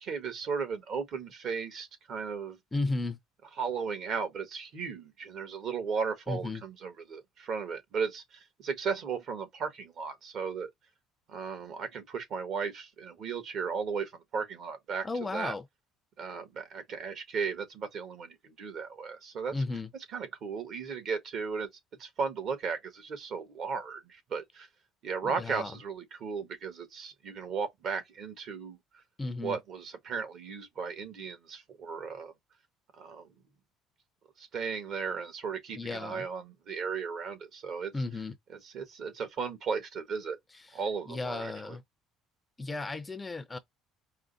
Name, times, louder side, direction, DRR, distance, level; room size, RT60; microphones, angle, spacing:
voice 1, 0.0-2.6 3.6-10.7 11.3-15.1 15.3-15.5 16.2-19.5 20.1-21.7 22.0-24.7 25.0-28.8 29.4-32.3 33.0-33.3 34.4-37.9 38.5-40.4 40.7-41.8, right 5 dB, 50° right, 1.4 m, -35 dB
voice 2, 2.7-3.2 6.3-6.6 15.0-15.6 19.5-19.9 25.2-25.7 29.2-29.6 35.8-36.3 37.9-38.4 40.5-40.8 41.1-41.8 42.6-43.6, left 3 dB, 15° left, 0.5 m, -34 dB
4.8 x 2.1 x 3.9 m
cardioid pair, 125°, 0 cm